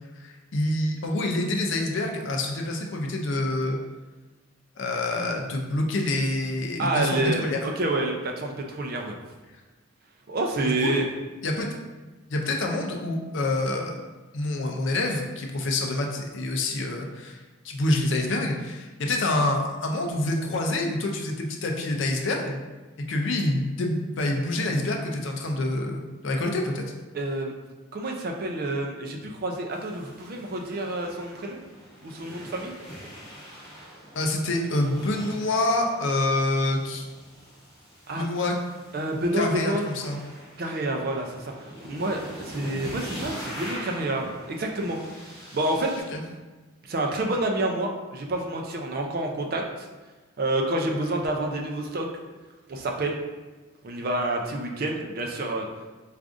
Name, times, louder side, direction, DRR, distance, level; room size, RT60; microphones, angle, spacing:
voice 1, 0.2-3.8 4.8-7.6 10.6-11.0 11.4-11.7 12.3-14.0 14.3-17.4 17.6-22.6 23.0-26.8 34.1-37.1 38.2-38.5 39.3-40.2 46.1-46.2, left 2 dB, 60° left, 2 dB, 0.4 m, -27 dB
voice 2, 6.8-9.1 10.3-11.1 27.1-27.5 27.9-31.6 32.0-32.7 38.1-38.3 38.9-39.9 40.6-45.0 45.5-45.9 46.9-49.9 50.4-52.1 52.7-53.2 53.8-55.7, right 2 dB, 45° right, 2 dB, 0.4 m, -28 dB
sound 1, 29.7-46.0, equal, 20° left, 0.9 m, -43 dB
4.7 x 2.4 x 2.5 m, 1.2 s
head